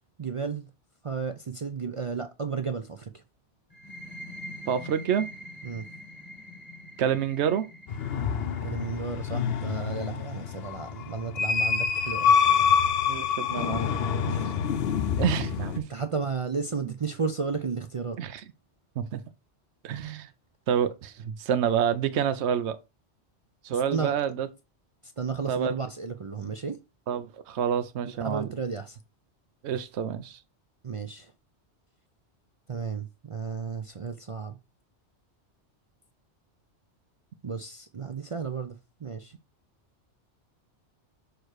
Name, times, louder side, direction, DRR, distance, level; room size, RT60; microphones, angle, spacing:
voice 1, 0.2-0.7 1.0-3.2 5.6-5.9 8.6-12.3 14.3-14.7 15.2-15.3 15.9-18.2 23.9-24.1 25.2-26.8 28.2-29.0 30.8-31.3 32.7-34.6 37.4-39.3, right 5 dB, 50° right, 0.4 m, -33 dB
sound 1, 3.7-11.2, equal, 20° left, 1.4 m, -45 dB
voice 2, 4.7-5.3 7.0-7.6 13.1-13.9 15.2-15.9 18.2-18.4 19.0-19.2 19.8-20.3 20.7-22.8 23.6-24.5 25.5-25.8 27.1-28.5 29.6-30.4, right 8 dB, 75° right, 0.9 m, -28 dB
sound 2, 7.9-15.8, left 7 dB, 65° left, 0.8 m, -26 dB
6.6 x 3.1 x 4.7 m
omnidirectional pair, 1.2 m